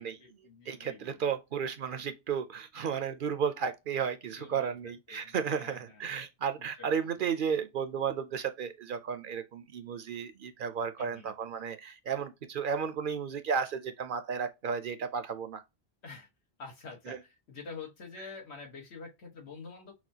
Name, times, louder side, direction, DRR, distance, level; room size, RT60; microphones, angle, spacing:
voice 1, 0.0-1.3 4.4-6.1 6.6-7.1 11.0-11.3 16.0-16.3 16.6-19.9, left 4 dB, 80° left, 1.7 m, -47 dB
voice 2, 0.7-15.6 17.1-17.2, right 7 dB, 60° right, 0.7 m, -33 dB
5.9 x 2.3 x 2.7 m
omnidirectional pair, 1.1 m